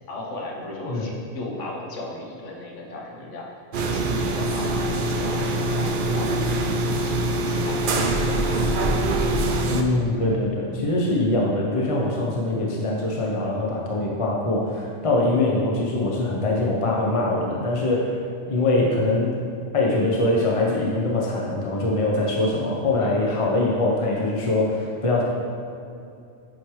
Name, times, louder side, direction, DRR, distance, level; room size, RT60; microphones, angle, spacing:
voice 1, 0.1-3.5 3.9-8.6 23.0-23.2, left 2 dB, 75° left, -1 dB, 1.3 m, -36 dB
sound 1, 3.7-9.8, right 2 dB, 60° right, 0.6 m, -23 dB
voice 2, 9.7-18.2 18.5-19.4 19.7-25.2, left 2 dB, 35° left, -3 dB, 0.6 m, -23 dB
7.8 x 4.7 x 3.1 m, 2.6 s
omnidirectional pair, 1.3 m